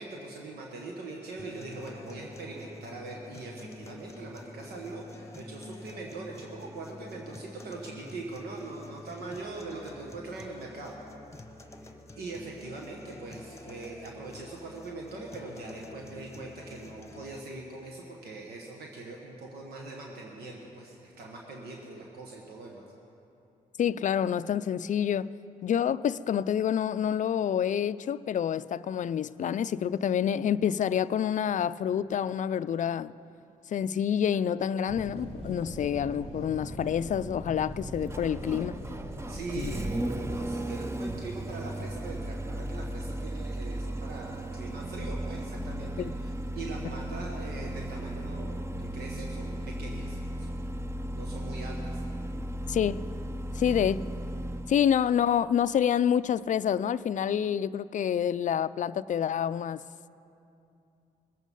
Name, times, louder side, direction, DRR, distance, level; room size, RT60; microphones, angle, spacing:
voice 1, 0.0-11.0 11.7-11.9 12.2-22.8 39.3-50.5 51.1-52.0, right 2 dB, 85° right, 1.3 m, -42 dB
sound 1, 1.4-17.4, left 2 dB, 20° left, 1.1 m, -48 dB
voice 2, 23.8-25.3 25.6-33.1 33.7-38.8 39.6-39.7 46.0-46.1 52.7-53.0 53.6-54.0 54.7-59.8, left 9 dB, 50° left, 0.4 m, -27 dB
sound 2, 34.9-40.0, right 1 dB, 40° right, 3.0 m, -40 dB
Engine starting, 36.4-54.8, right 1 dB, 15° right, 0.7 m, -36 dB
20.5 x 8.2 x 5.4 m
cardioid pair, 65°, 16 cm